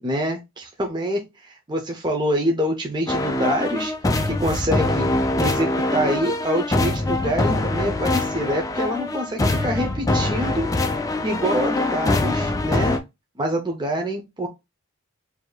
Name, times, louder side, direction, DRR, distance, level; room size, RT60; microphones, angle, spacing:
voice 1, 0.0-3.9 4.3-5.1 5.4-10.7 11.2-13.0 13.4-14.5, equal, 20° right, 0.6 m, -26 dB
sound 1, 3.1-13.0, left 2 dB, 15° left, 0.4 m, -23 dB
5.0 x 2.8 x 2.3 m
head